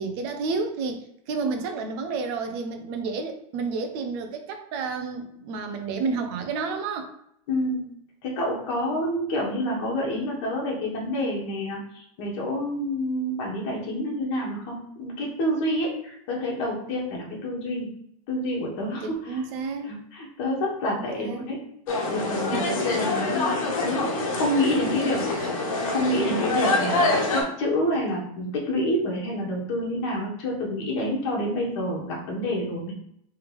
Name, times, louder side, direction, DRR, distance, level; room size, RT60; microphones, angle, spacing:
voice 1, 0.0-7.1 19.0-19.9 20.9-21.5 22.5-22.6 24.6-24.8 25.1-25.6, right 4 dB, 45° right, 6 dB, 0.7 m, -31 dB
voice 2, 7.5-7.8 8.2-17.9 18.3-19.4 19.9-21.6 22.1-25.2 25.8-32.9, left 1 dB, 50° left, -2 dB, 1.5 m, -28 dB
sound 1, 21.9-27.4, left 2 dB, 70° left, 1.3 m, -26 dB
3.4 x 3.2 x 3.5 m, 0.72 s
supercardioid pair, 165°, 18 cm